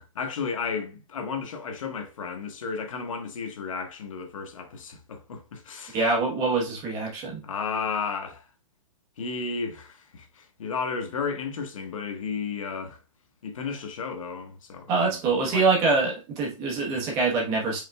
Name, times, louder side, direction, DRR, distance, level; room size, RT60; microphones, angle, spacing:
voice 1, 0.0-6.0 6.4-6.6 7.4-8.5 9.2-13.0 13.4-15.2 15.5-15.7, left 5 dB, 70° left, 1.1 m, -33 dB
voice 2, 5.9-7.4 14.9-17.8, right 3 dB, 20° right, 1.1 m, -24 dB
5.0 x 3.8 x 2.2 m
hypercardioid pair, 175°, 17 cm